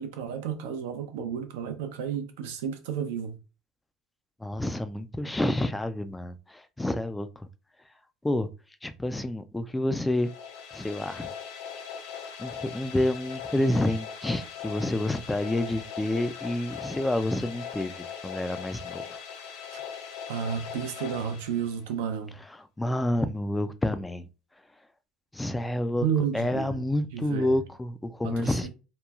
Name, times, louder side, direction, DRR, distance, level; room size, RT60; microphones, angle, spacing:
voice 1, 0.0-3.3 19.7-19.8 20.3-22.4 26.0-26.8 27.1-27.5 28.2-28.7, right 7 dB, 90° right, 0.5 m, -32 dB
voice 2, 4.4-7.5 8.2-8.5 8.8-10.3 10.7-11.3 12.4-19.2 22.4-24.3 25.3-26.0 26.3-28.7, left 1 dB, 10° left, 0.3 m, -29 dB
sound 1, 10.1-22.0, left 7 dB, 75° left, 0.5 m, -40 dB
2.9 x 2.2 x 2.3 m
supercardioid pair, 100°, 0 cm